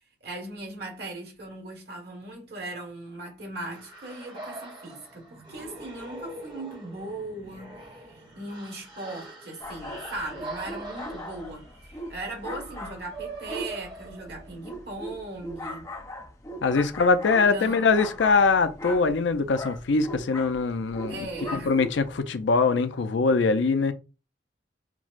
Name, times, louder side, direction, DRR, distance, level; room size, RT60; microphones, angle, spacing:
voice 1, 0.0-15.9 17.5-17.9 21.1-21.8, right 2 dB, 60° right, 1.3 m, -39 dB
sound 1, 3.7-14.8, right 2 dB, 25° right, 0.9 m, -43 dB
sound 2, 9.6-22.2, left 1 dB, 15° left, 0.6 m, -39 dB
voice 2, 16.6-23.9, left 4 dB, 85° left, 0.5 m, -23 dB
5.9 x 2.1 x 2.4 m
head